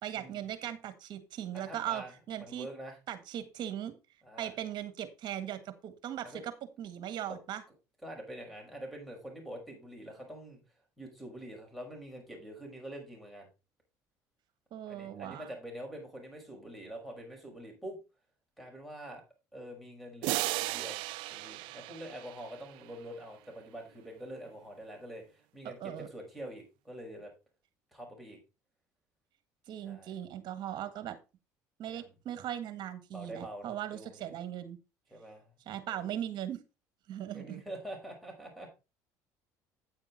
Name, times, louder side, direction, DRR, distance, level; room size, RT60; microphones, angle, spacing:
voice 1, 0.0-2.7 3.1-3.9 4.4-6.5 6.8-7.6 14.7-15.5 25.6-26.1 29.7-31.2 31.8-34.8 35.6-36.6 37.1-37.6, right 11 dB, 60° right, 11 dB, 1.6 m, -39 dB
voice 2, 1.6-2.1 2.4-3.0 4.2-4.5 6.2-6.4 7.3-7.4 8.0-10.6 11.0-13.5 14.9-18.0 18.6-19.2 19.5-27.3 27.9-28.4 29.8-30.1 31.8-32.1 33.1-34.3 35.1-35.5 35.9-36.1 37.3-38.7, right 1 dB, ahead, 2 dB, 5.7 m, -45 dB
sound 1, 20.2-22.9, right 20 dB, 75° right, 0.4 m, -36 dB
9.5 x 6.8 x 4.2 m, 0.29 s
supercardioid pair, 80°, 9 cm